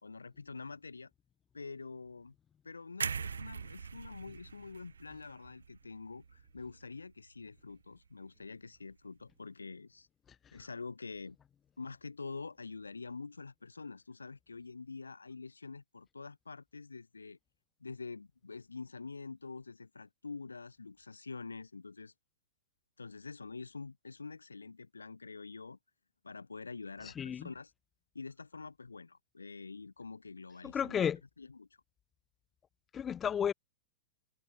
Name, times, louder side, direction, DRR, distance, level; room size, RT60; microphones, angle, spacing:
voice 1, 0.0-1.1 1.5-2.3 2.6-10.1 10.5-11.4 11.8-17.4 17.8-22.1 23.0-25.8 26.2-27.7 28.1-31.1 31.4-31.7, left 4 dB, 80° left, 1.6 m, -46 dB
sound 1, 3.0-7.0 7.4-7.6, right 6 dB, 75° right, 0.5 m, -42 dB
voice 2, 27.0-27.5 30.6-31.2 32.9-33.5, left 8 dB, 20° left, 1.0 m, -33 dB
figure-of-eight pair, 100°, 0 cm